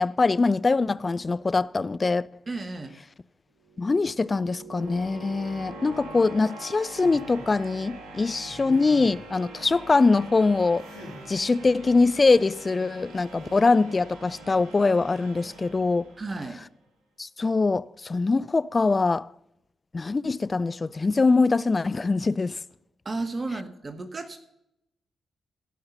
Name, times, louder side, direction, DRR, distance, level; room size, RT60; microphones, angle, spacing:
voice 1, 0.0-2.3 3.8-10.9 11.3-16.1 17.2-19.3 19.9-22.6, left 3 dB, 35° left, 0.4 m, -23 dB
voice 2, 2.5-2.9 16.2-16.6 23.0-24.4, right 3 dB, 40° right, 1.2 m, -33 dB
sound 1, 3.6-16.6, right 2 dB, 80° right, 2.2 m, -44 dB
sound 2, 7.0-7.5 8.4-9.4 10.8-11.3 13.3-13.7, left 1 dB, 85° left, 5.0 m, -45 dB
17.0 x 5.7 x 5.4 m
hypercardioid pair, 40°, 0 cm